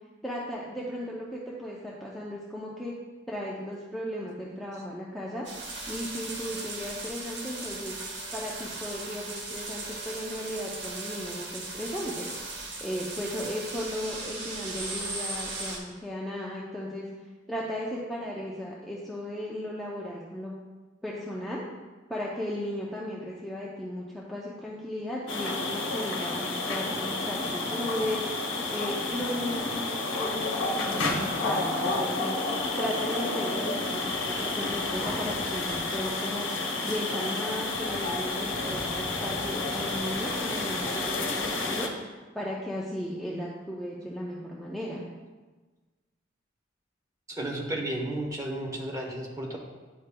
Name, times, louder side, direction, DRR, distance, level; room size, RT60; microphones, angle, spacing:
voice 1, 0.2-2.9 3.3-5.5 5.9-7.9 8.3-12.3 12.8-17.1 17.5-20.6 21.0-21.6 22.1-41.9 42.3-45.0, equal, ahead, -5 dB, 0.5 m, -35 dB
sound 1, 5.4-15.8, right 2 dB, 70° right, 1.2 m, -37 dB
sound 2, 25.3-41.9, left 2 dB, 75° left, 0.9 m, -30 dB
voice 2, 47.3-49.6, right 1 dB, 15° right, -1 dB, 0.9 m, -33 dB
9.8 x 5.1 x 2.2 m, 1.3 s
head